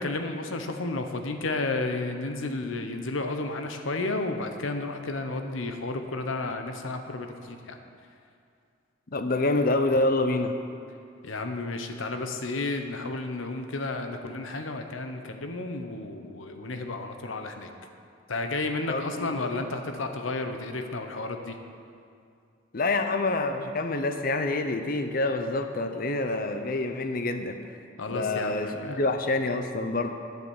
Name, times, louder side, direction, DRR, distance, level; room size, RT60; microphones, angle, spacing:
voice 1, 0.0-7.8 11.2-17.7 18.3-21.6 28.0-29.0, left 2 dB, 90° left, 6 dB, 0.9 m, -32 dB
voice 2, 9.1-10.5 18.9-19.5 22.7-27.6 28.1-30.1, left 2 dB, 45° left, 7 dB, 0.7 m, -27 dB
9.6 x 7.8 x 7.3 m, 2.4 s
head